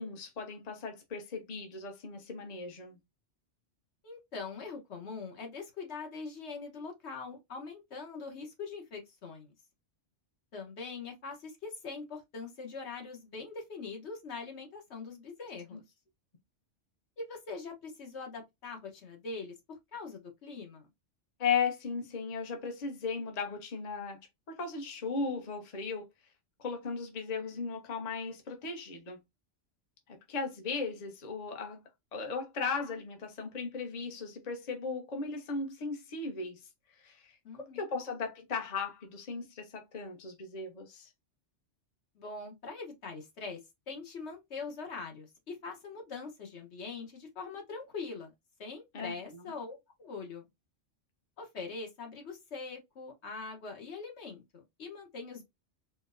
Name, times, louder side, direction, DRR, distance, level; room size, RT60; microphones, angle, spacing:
voice 1, 0.0-3.0 15.7-15.8 21.4-26.0 26.6-29.2 30.1-31.8 32.1-36.6 37.0-37.4 37.7-41.1 48.9-49.4, left 5 dB, 40° left, 0.8 m, -36 dB
voice 2, 4.0-9.5 10.5-15.8 17.2-20.9 37.4-37.9 42.1-43.6 43.9-48.3 48.6-50.4 51.4-55.4, left 4 dB, 70° left, 1.2 m, -43 dB
4.4 x 2.1 x 2.5 m
omnidirectional pair, 1.2 m